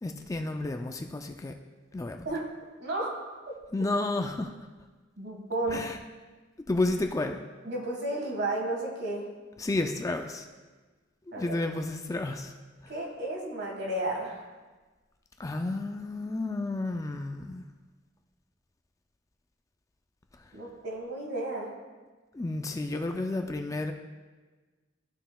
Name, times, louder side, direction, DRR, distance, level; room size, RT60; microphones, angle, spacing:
voice 1, 0.0-1.6 1.9-2.3 3.7-4.7 5.7-6.0 6.7-7.4 9.6-10.5 11.4-12.5 12.8-12.9 15.4-17.6 22.3-23.9, left 2 dB, 15° left, 5 dB, 0.3 m, -31 dB
voice 2, 2.8-3.1 5.2-5.8 7.6-9.3 11.3-11.6 12.9-14.5 20.5-21.7, right 2 dB, 60° right, 0 dB, 1.6 m, -33 dB
13.5 x 5.5 x 2.3 m, 1.3 s
head